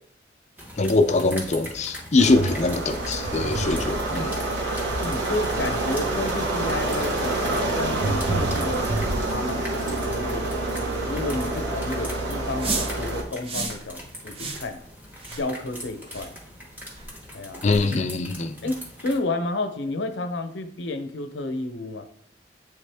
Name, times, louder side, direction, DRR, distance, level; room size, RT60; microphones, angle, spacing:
sound 1, 0.6-19.2, equal, 10° right, 1.2 m, -42 dB
voice 1, 0.8-4.4 17.6-18.6, left 3 dB, 40° left, 8 dB, 0.4 m, -22 dB
sound 2, 2.2-13.2, right 2 dB, 80° right, 1.3 m, -27 dB
voice 2, 5.0-8.9 9.2-10.5 11.0-14.8 15.4-16.4 17.3-17.6 18.6-22.0, left 2 dB, 85° left, 8 dB, 0.7 m, -31 dB
sound 3, 12.6-13.0 13.4-13.8 14.3-14.7 15.2-15.5 16.1-16.3 16.9-17.1 17.7-17.8, right 3 dB, 30° right, 0.6 m, -31 dB
8.3 x 3.5 x 3.4 m, 0.66 s
head